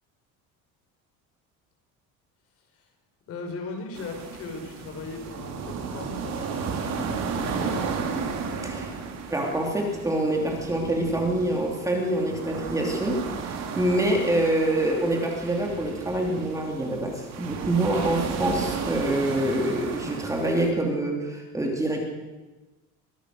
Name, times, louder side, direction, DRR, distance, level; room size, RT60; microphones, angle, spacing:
voice 1, 3.3-8.0 19.6-19.9, left 3 dB, 45° left, 4 dB, 4.8 m, -38 dB
sound 1, 3.9-20.7, right 5 dB, 55° right, 3.7 m, -33 dB
voice 2, 9.3-13.2 13.8-22.1, right 1 dB, 10° right, 1 dB, 3.1 m, -26 dB
24.0 x 17.0 x 6.6 m, 1.1 s
cardioid pair, 160°, 32 cm